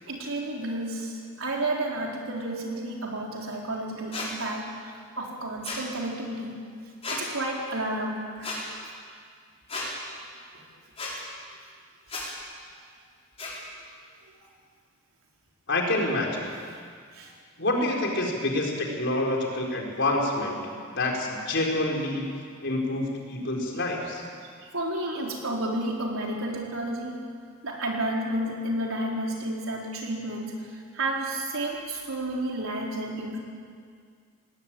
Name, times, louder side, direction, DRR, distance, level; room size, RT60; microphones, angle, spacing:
voice 1, 0.1-6.6 7.1-8.5 10.1-10.2 10.5-10.6 12.1-12.4 17.1-17.3 24.4-27.2 27.6-33.4, right 1 dB, 70° right, -2 dB, 4.3 m, -31 dB
sound 1, 4.1-4.3 5.6-5.8 7.0-7.2 8.4-8.6 9.7-9.9 11.0-11.1 12.1-12.2 13.4-13.5, left 3 dB, 30° left, 5.9 m, -33 dB
voice 2, 15.7-16.5 17.6-20.6 20.9-22.3 22.6-24.2, left 2 dB, 55° left, -1 dB, 4.5 m, -27 dB
19.5 x 19.0 x 9.2 m, 2.1 s
head